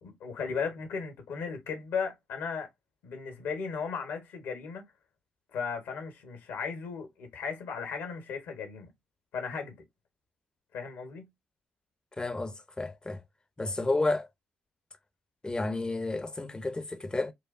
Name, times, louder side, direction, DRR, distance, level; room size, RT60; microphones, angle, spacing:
voice 1, 0.0-2.7 3.0-4.8 5.5-8.9 9.3-9.8 10.7-11.3, left 5 dB, 75° left, 1.2 m, -36 dB
voice 2, 12.2-13.2 13.6-14.3 15.4-17.3, left 2 dB, 20° left, 0.7 m, -31 dB
4.7 x 2.3 x 2.5 m
hypercardioid pair, 45°, 4 cm